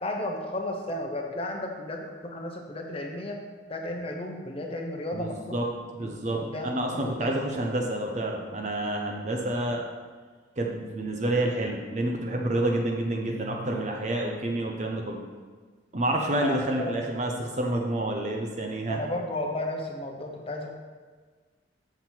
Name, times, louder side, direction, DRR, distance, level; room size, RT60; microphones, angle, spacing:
voice 1, 0.0-3.4 3.7-5.4 6.0-6.1 6.4-6.7 7.0-7.3 16.4-17.0 18.9-20.7, left 1 dB, 30° left, 2 dB, 0.9 m, -33 dB
voice 2, 5.1-5.7 5.9-9.8 10.6-15.2 15.9-19.0, right 1 dB, 40° right, 1 dB, 0.7 m, -29 dB
7.4 x 6.0 x 4.4 m, 1.5 s
head